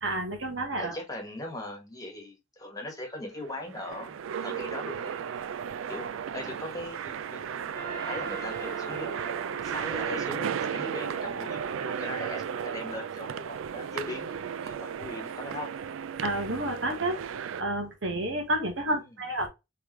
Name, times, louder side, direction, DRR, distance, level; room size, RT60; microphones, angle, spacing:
voice 1, 0.0-1.0 16.2-17.2 17.6-19.5, right 1 dB, 65° right, 1.4 m, -30 dB
voice 2, 0.8-5.3 5.9-9.1 9.6-15.7 19.1-19.2, left 1 dB, 20° left, 1.4 m, -40 dB
sound 1, 3.3-17.6, right 7 dB, 90° right, 0.4 m, -35 dB
Trumpet, 7.7-12.8, right 4 dB, 45° right, 1.9 m, -44 dB
4.7 x 3.4 x 3.0 m
head